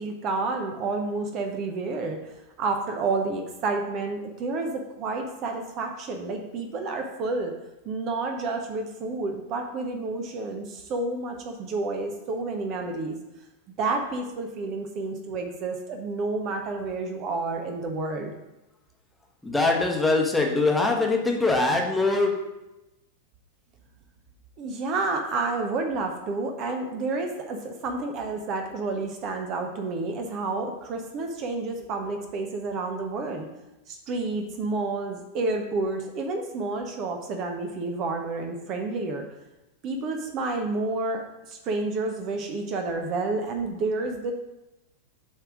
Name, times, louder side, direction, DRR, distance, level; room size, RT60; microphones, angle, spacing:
voice 1, 0.0-7.5 7.8-13.2 13.8-18.3 24.6-33.5 33.9-39.2 39.8-44.3, right 3 dB, 35° right, 4 dB, 0.7 m, -30 dB
voice 2, 19.4-22.4, left 3 dB, 5° left, 0 dB, 1.1 m, -22 dB
7.3 x 3.4 x 6.1 m, 0.96 s
figure-of-eight pair, 90°, 0 cm